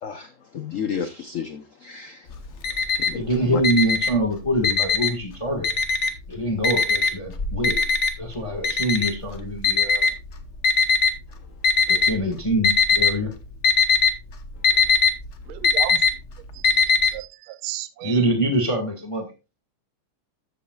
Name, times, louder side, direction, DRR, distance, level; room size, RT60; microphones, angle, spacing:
voice 1, 0.0-2.3 2.9-3.6, left 7 dB, 75° left, 0.7 m, -32 dB
Alarm, 2.3-3.3 3.6-5.2 5.6-6.3 6.6-11.1 11.6-12.2 12.5-13.2 13.4-17.1, left 4 dB, 45° left, 1.1 m, -20 dB
voice 2, 3.1-5.8 6.3-7.9 8.2-10.1 11.9-13.3 18.0-19.3, right 1 dB, 15° left, 1.5 m, -25 dB
voice 3, 15.5-16.0 16.5-16.7 17.1-18.2, right 14 dB, 80° right, 1.5 m, -34 dB
13.5 x 8.3 x 2.3 m
omnidirectional pair, 2.4 m